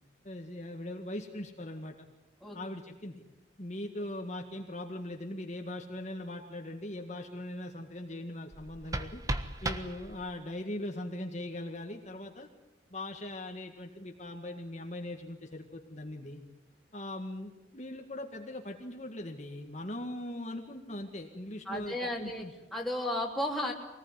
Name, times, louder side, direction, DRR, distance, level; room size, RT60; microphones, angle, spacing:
voice 1, 0.2-1.9 2.5-3.2 3.6-9.2 9.6-12.5 12.9-16.4 16.9-22.5, left 1 dB, 40° left, 3 dB, 1.9 m, -40 dB
sound 1, 8.5-10.5, right 1 dB, 20° right, 1.3 m, -36 dB
voice 2, 21.7-23.7, left 1 dB, ahead, -1 dB, 3.4 m, -34 dB
24.5 x 19.5 x 9.7 m, 1.0 s
head